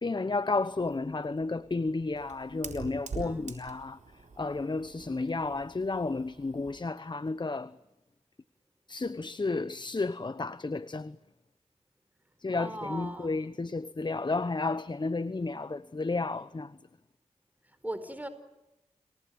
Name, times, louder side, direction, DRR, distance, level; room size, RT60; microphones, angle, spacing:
voice 1, 0.0-7.8 8.9-11.2 12.4-16.8, left 3 dB, 35° left, 1.0 m, -32 dB
Fire, 0.7-6.9, right 4 dB, 75° right, 4.1 m, -46 dB
voice 2, 3.2-3.5 12.6-13.3 17.8-18.3, right 1 dB, 15° right, 4.6 m, -38 dB
29.5 x 18.5 x 9.3 m
cardioid pair, 45°, 13 cm